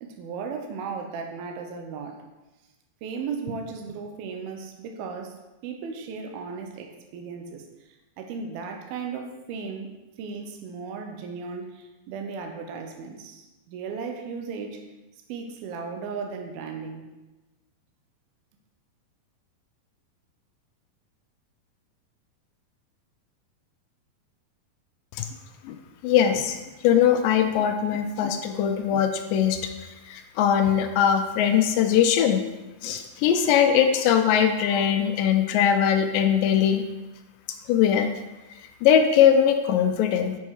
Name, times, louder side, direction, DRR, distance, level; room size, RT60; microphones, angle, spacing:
voice 1, 0.0-2.2 3.0-5.4 5.6-7.6 8.2-9.9 10.2-14.9 15.3-17.1, right 5 dB, 80° right, 4 dB, 2.6 m, -36 dB
voice 2, 26.0-26.6 26.8-32.4 32.8-36.9 37.7-38.1 38.8-40.4, left 9 dB, 80° left, 6 dB, 2.1 m, -21 dB
6.9 x 5.5 x 4.7 m, 1.1 s
omnidirectional pair, 4.4 m